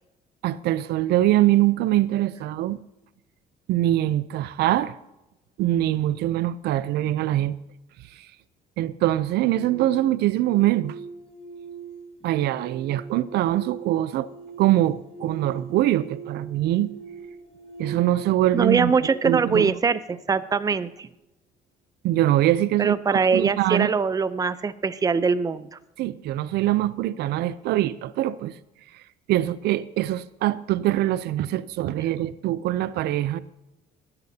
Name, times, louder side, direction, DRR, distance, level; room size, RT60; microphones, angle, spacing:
voice 1, 0.4-2.8 3.7-4.9 5.6-7.6 8.1-8.3 8.8-10.9 12.2-14.3 14.6-16.9 17.8-18.9 19.2-19.7 22.0-23.9 26.0-28.5 28.9-29.0 29.3-33.4, right 14 dB, 75° right, 0.5 m, -23 dB
sound 1, 9.1-20.2, right 5 dB, 35° left, 3.1 m, -42 dB
voice 2, 18.5-21.1 22.8-25.8, right 5 dB, 20° right, 0.6 m, -23 dB
19.5 x 11.0 x 2.8 m
cardioid pair, 110°, 17 cm